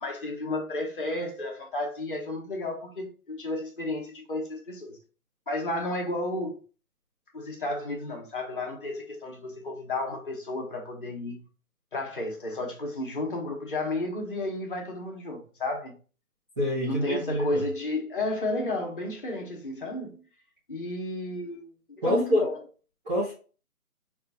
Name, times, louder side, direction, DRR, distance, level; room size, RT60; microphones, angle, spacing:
voice 1, 0.0-5.0 5.5-6.6 7.3-11.4 11.9-15.9 16.9-20.2 20.7-22.6, left 2 dB, 35° left, 1.1 m, -32 dB
voice 2, 16.6-17.6 22.0-22.4 23.0-23.3, equal, ahead, 0.6 m, -26 dB
5.4 x 2.4 x 4.0 m
figure-of-eight pair, 155°, 45 cm